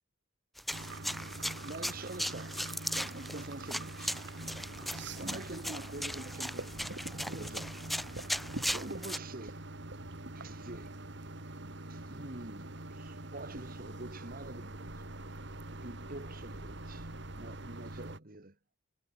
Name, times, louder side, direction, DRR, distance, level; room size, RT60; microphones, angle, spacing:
sound 1, 0.6-9.2, equal, ahead, 1.6 m, -38 dB
sound 2, 0.7-18.2, right 2 dB, 65° right, 2.8 m, -44 dB
voice 1, 1.6-2.6 2.9-4.2 5.2-6.8 7.3-7.9 8.7-9.6 10.3-10.9 11.9-14.9 15.7-18.5, right 2 dB, 50° right, 2.1 m, -46 dB
head